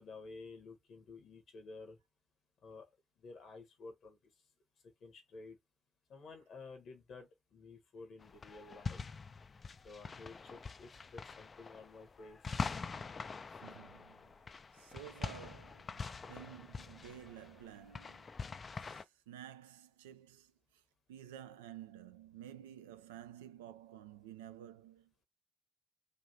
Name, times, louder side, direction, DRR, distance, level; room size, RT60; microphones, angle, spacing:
voice 1, 0.0-2.0 2.6-2.9 3.2-4.2 5.0-5.6 6.1-9.0 9.8-12.4, left 3 dB, 60° left, 1.2 m, -52 dB
sound 1, 8.2-19.0, left 5 dB, 40° left, 0.4 m, -44 dB
voice 2, 13.6-14.3 14.7-18.4 18.7-20.8 21.1-25.2, right 10 dB, 85° right, 0.3 m, -52 dB
3.3 x 2.6 x 2.7 m
hypercardioid pair, 40°, 0 cm